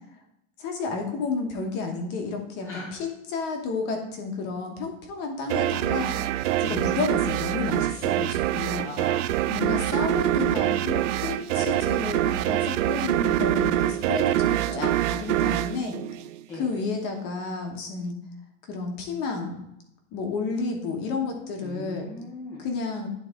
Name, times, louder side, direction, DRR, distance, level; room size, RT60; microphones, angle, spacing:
voice 1, 0.6-6.2 6.6-8.9 9.5-16.0 16.5-18.2 18.7-19.6 20.1-22.1 22.6-23.1, left 4 dB, 25° left, 3 dB, 1.1 m, -31 dB
voice 2, 2.6-3.0 6.6-6.9 8.8-9.9 11.5-11.8 16.5-16.7 21.6-22.7, left 2 dB, 5° left, -7 dB, 0.7 m, -39 dB
sound 1, 5.5-16.8, right 13 dB, 65° right, 0.5 m, -25 dB
10.5 x 4.1 x 3.6 m, 0.82 s
supercardioid pair, 180°, 39 cm